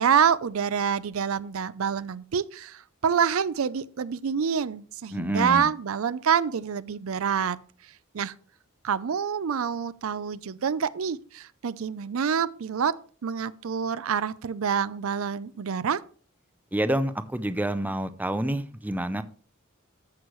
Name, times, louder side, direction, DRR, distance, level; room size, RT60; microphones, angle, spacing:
voice 1, 0.0-7.6 8.1-8.3 8.8-12.9 13.2-16.0, right 7 dB, 75° right, 0.5 m, -27 dB
voice 2, 5.1-5.7 16.7-19.2, right 1 dB, 10° right, 0.5 m, -28 dB
14.0 x 6.3 x 3.1 m
head